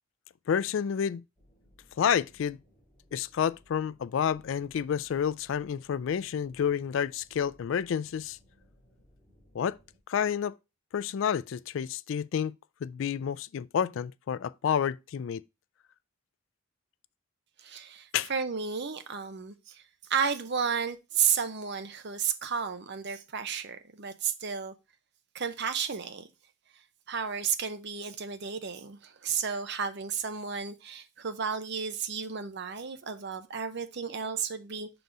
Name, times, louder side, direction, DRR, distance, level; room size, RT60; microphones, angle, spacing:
voice 1, 0.5-1.2 2.0-2.6 3.1-8.4 9.5-9.8 10.1-10.5 10.9-12.5 12.8-15.4 18.1-18.3, left 8 dB, 65° left, 0.3 m, -29 dB
sound 1, 1.4-10.0, equal, 5° right, 2.7 m, -62 dB
voice 2, 17.6-19.8 20.1-24.7 25.3-26.3 27.1-34.9, right 6 dB, 55° right, 0.7 m, -32 dB
5.4 x 4.0 x 4.5 m
head